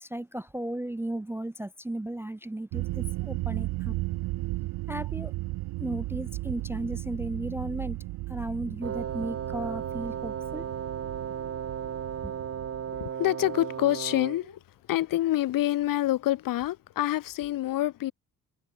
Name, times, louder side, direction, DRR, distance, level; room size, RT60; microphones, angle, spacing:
voice 1, 0.0-4.0 4.9-5.3 5.8-8.0 8.3-10.6 12.2-12.3, right 1 dB, 5° right, 0.4 m, -35 dB
sound 1, 2.7-13.0, right 20 dB, 90° right, 0.8 m, -35 dB
Wind instrument woodwind instrument, 8.8-14.5, right 8 dB, 40° right, 1.2 m, -35 dB
voice 2, 12.9-14.6 14.9-18.1, left 14 dB, 60° left, 0.7 m, -27 dB
cardioid pair, 95°, 37 cm